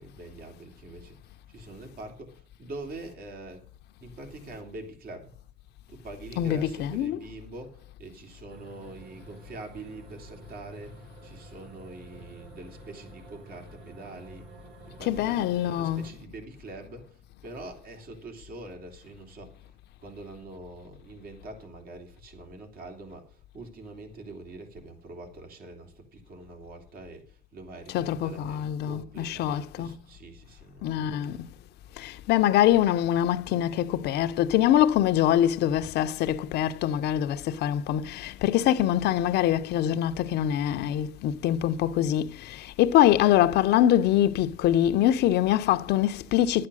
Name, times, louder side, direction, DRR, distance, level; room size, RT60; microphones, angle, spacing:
voice 1, 0.0-3.7 4.0-5.4 5.9-14.5 14.9-31.4 42.0-42.1 42.3-42.5, right 2 dB, 60° right, 3.2 m, -44 dB
voice 2, 6.4-7.2 15.0-16.1 27.9-30.0 30.8-31.5 32.0-46.7, left 12 dB, 80° left, 0.8 m, -24 dB
sound 1, 8.5-16.1, right 3 dB, 75° right, 3.9 m, -50 dB
11.5 x 8.7 x 6.3 m
cardioid pair, 110°, 17 cm